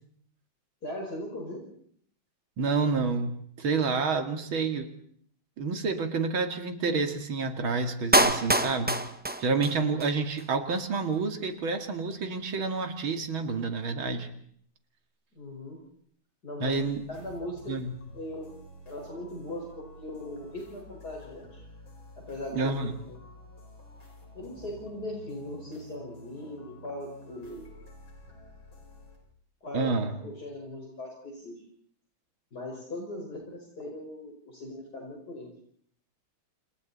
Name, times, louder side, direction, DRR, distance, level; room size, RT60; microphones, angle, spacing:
voice 1, 0.8-1.6 15.4-15.8 16.4-16.8 17.1-17.7 18.1-18.5 18.9-21.6 22.3-22.7 24.3-27.7 29.6-31.5 32.5-35.5, left 1 dB, 50° left, -1 dB, 5.9 m, -39 dB
voice 2, 2.6-4.9 5.6-9.0 9.4-14.3 16.6-17.0 17.7-17.9 22.5-22.9 29.7-30.2, right 4 dB, 80° right, 6 dB, 3.1 m, -29 dB
Clapping, 8.1-10.1 10.4-10.5, right 1 dB, 10° right, 0.6 m, -25 dB
sound 1, 16.6-29.2, equal, 70° left, 6.5 m, -50 dB
29.0 x 28.5 x 4.2 m, 0.62 s
omnidirectional pair, 2.2 m